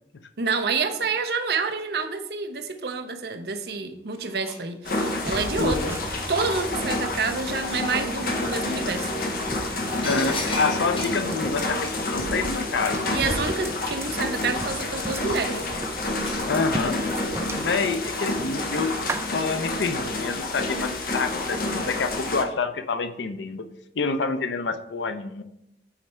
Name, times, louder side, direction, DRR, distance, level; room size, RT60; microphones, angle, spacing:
voice 1, 0.4-6.0 6.3-9.1 13.1-15.6, right 4 dB, 60° right, 7 dB, 0.6 m, -28 dB
sound 1, 3.7-3.8 4.1-5.3 5.8-7.1 8.8-8.9 9.4-11.3 12.9-13.0 13.3-15.6 16.2-16.5 18.1-18.8 19.3-19.8 20.8-21.1 21.4-21.5, left 3 dB, 30° left, 1.1 m, -38 dB
sound 2, 4.8-22.4, left 2 dB, 55° left, 0.9 m, -29 dB
sound 3, 5.3-19.2, right 2 dB, 15° right, 0.3 m, -37 dB
voice 2, 5.6-6.0 10.0-13.2 16.4-17.0 17.6-18.9 19.3-23.7 24.0-25.4, left 4 dB, 80° left, 9 dB, 0.5 m, -27 dB
8.6 x 3.2 x 4.3 m, 0.84 s
head